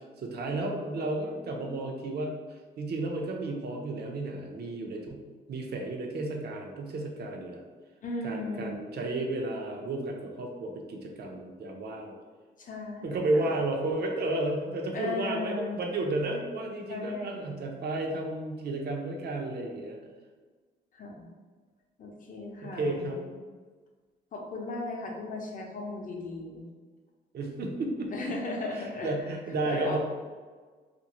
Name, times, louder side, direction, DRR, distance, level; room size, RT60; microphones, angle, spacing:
voice 1, 0.0-2.3 2.8-5.2 5.5-7.6 8.2-12.1 13.0-20.0 22.6-23.2 27.3-28.1 28.8-30.0, right 2 dB, 55° right, 1 dB, 0.6 m, -32 dB
voice 2, 8.0-8.7 12.6-13.5 14.9-15.8 16.9-17.6 20.9-21.3 22.0-23.3 24.3-26.7 28.1-29.1 29.6-30.0, left 2 dB, 40° left, 0 dB, 0.7 m, -36 dB
2.6 x 2.4 x 2.9 m, 1.4 s
cardioid pair, 90°, 20 cm